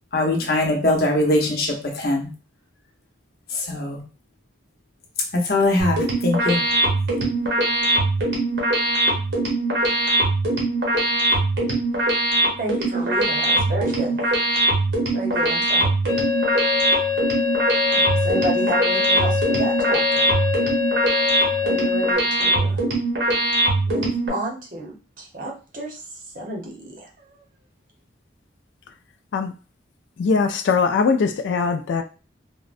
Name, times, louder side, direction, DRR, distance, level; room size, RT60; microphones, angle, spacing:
voice 1, 0.1-2.3 3.5-4.0 5.4-6.6, left 2 dB, 55° left, 1 dB, 0.7 m, -21 dB
sound 1, 5.8-24.3, right 2 dB, 70° right, 1.0 m, -22 dB
voice 2, 12.6-14.2 15.1-15.9 17.9-20.3 21.6-22.8 23.9-26.0 26.3-27.4, right 2 dB, 45° right, 0 dB, 0.7 m, -31 dB
sound 2, 16.1-22.1, left 8 dB, 10° left, 0.4 m, -24 dB
voice 3, 30.2-32.0, left 5 dB, 75° left, 7 dB, 0.3 m, -21 dB
3.6 x 2.1 x 2.4 m, 0.34 s
head